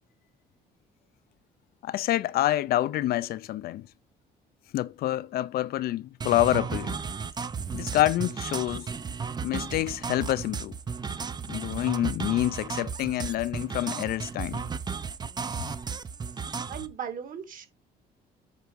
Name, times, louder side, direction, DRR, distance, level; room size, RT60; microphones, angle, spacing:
voice 1, 1.8-3.9 4.7-7.0 7.7-8.9 9.4-10.8 11.5-14.6, left 14 dB, 65° left, 0.5 m, -27 dB
sound 1, 6.2-16.9, right 5 dB, 25° right, 0.6 m, -34 dB
voice 2, 16.7-17.7, right 8 dB, 55° right, 2.2 m, -37 dB
8.3 x 4.8 x 4.6 m
cardioid pair, 110°, 17 cm